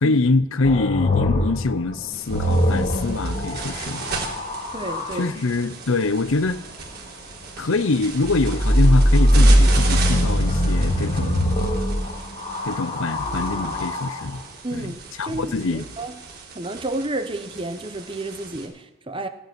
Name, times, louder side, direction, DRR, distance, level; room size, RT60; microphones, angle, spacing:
voice 1, 0.0-4.1 5.1-6.6 7.6-11.5 12.6-14.4 14.7-15.9, left 3 dB, 60° left, 0.7 m, -24 dB
sound 1, 0.6-5.2 8.2-14.3 15.3-15.9, equal, 30° left, 2.0 m, -21 dB
sound 2, 2.1-18.6, right 4 dB, 45° right, 3.4 m, -36 dB
voice 2, 4.7-5.3 14.6-15.0 15.2-16.1 16.5-19.3, right 2 dB, 25° right, 0.9 m, -31 dB
15.0 x 9.2 x 9.6 m
head